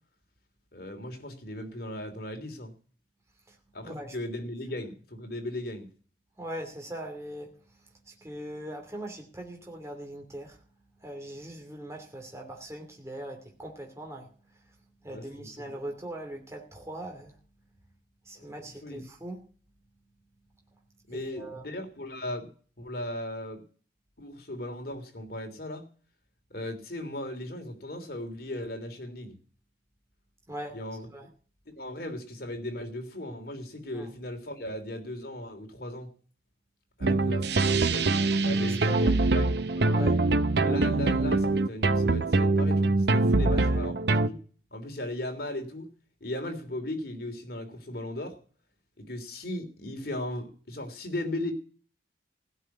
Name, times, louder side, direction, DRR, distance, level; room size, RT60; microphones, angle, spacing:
voice 1, 0.7-2.7 3.7-5.9 15.1-15.5 18.3-18.5 18.8-19.0 21.1-22.5 22.8-23.6 24.2-25.9 26.5-29.4 30.7-31.1 31.8-36.1 37.0-38.1 38.4-40.0 40.6-43.9 44.3-44.4 44.7-45.9 46.2-48.4 49.0-51.5, left 1 dB, 55° left, 3.2 m, -37 dB
voice 2, 3.8-4.2 6.4-10.6 11.0-14.8 15.0-17.4 18.2-19.4 20.7-20.8 21.1-21.6 30.5-30.8 31.1-31.3 33.9-34.1 38.5-39.2 39.9-40.2 43.3-43.9, right 1 dB, 15° right, 2.6 m, -41 dB
sound 1, 37.0-44.3, right 2 dB, 65° right, 0.8 m, -24 dB
16.5 x 5.8 x 9.3 m
head